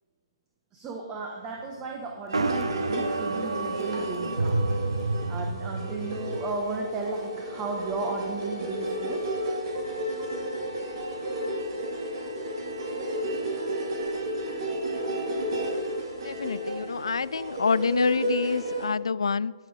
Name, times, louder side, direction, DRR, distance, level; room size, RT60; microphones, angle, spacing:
voice 1, 0.7-4.6 5.3-9.2, right 3 dB, 20° right, 2 dB, 1.3 m, -34 dB
sound 1, 2.3-18.9, right 1 dB, 50° right, 3.0 m, -32 dB
sound 2, 2.3-6.4, right 2 dB, 75° right, 0.9 m, -29 dB
voice 2, 16.2-19.5, left 5 dB, 70° left, 20 dB, 0.3 m, -27 dB
19.0 x 7.3 x 5.0 m, 1.5 s
figure-of-eight pair, 130°, 3 cm